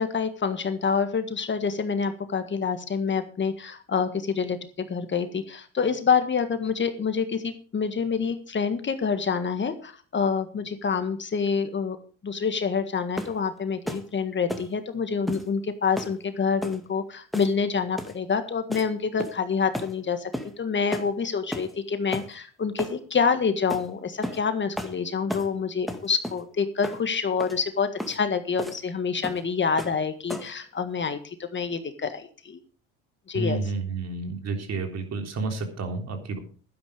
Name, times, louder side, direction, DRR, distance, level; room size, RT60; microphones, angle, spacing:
voice 1, 0.0-12.0 12.2-20.3 20.6-32.6 33.3-33.6, left 5 dB, 30° left, 9 dB, 1.7 m, -27 dB
sound 1, 13.2-13.4 13.9-14.1 14.5-14.7 15.3-15.5 16.0-16.2 16.6-16.8 17.3-17.6 18.0-18.2 18.7-18.9 19.2-19.5 19.7-19.9 20.3-20.5 20.9-21.1 21.5-21.7 22.1-22.3 22.8-23.0 23.7-23.9 24.2-24.4 24.8-25.0 25.3-25.5 25.9-26.4 26.8-27.0 27.4-27.6 28.0-28.2 28.6-28.8 29.2-29.4 29.8-30.0 30.3-30.6, equal, ahead, 2.1 m, -33 dB
voice 2, 33.3-36.4, right 3 dB, 45° right, 4 dB, 3.7 m, -30 dB
12.0 x 10.0 x 5.1 m, 0.40 s
supercardioid pair, 80°, 36 cm